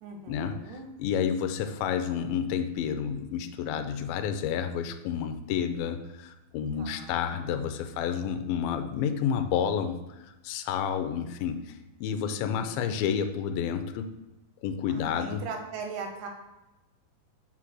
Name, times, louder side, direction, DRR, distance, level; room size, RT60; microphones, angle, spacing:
voice 1, 0.0-0.9 6.8-7.4 12.3-13.1 14.9-16.3, right 4 dB, 70° right, 3 dB, 2.5 m, -40 dB
voice 2, 1.0-14.1 14.6-15.4, left 8 dB, 85° left, 7 dB, 2.4 m, -30 dB
5.5 x 4.9 x 5.9 m, 1.0 s
omnidirectional pair, 4.2 m